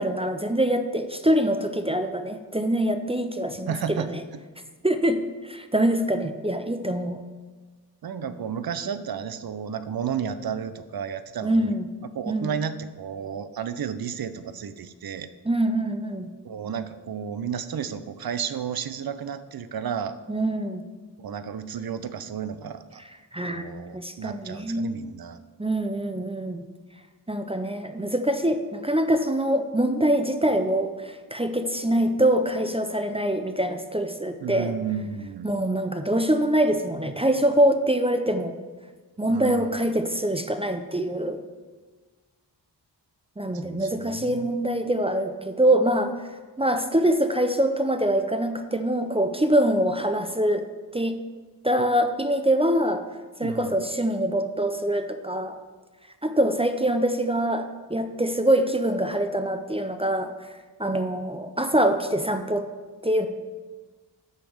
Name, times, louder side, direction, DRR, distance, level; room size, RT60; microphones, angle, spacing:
voice 1, 0.0-4.2 4.8-7.2 11.4-11.9 12.3-12.5 15.5-16.3 20.3-20.8 23.3-25.0 25.6-26.7 27.3-34.7 35.4-38.6 39.2-41.4 43.4-46.1 46.6-50.6 50.9-51.2 51.6-53.0 53.4-55.6 56.2-60.3 60.8-62.7 63.0-63.3, right 1 dB, 15° right, 8 dB, 0.5 m, -24 dB
voice 2, 3.7-4.1 8.0-11.7 12.1-15.3 16.4-20.2 21.2-23.0 23.5-25.4 34.4-35.5 39.3-39.7 43.6-44.5 53.4-53.8, right 7 dB, 55° right, 12 dB, 0.6 m, -32 dB
9.0 x 3.4 x 6.4 m, 1.3 s
cardioid pair, 50°, 43 cm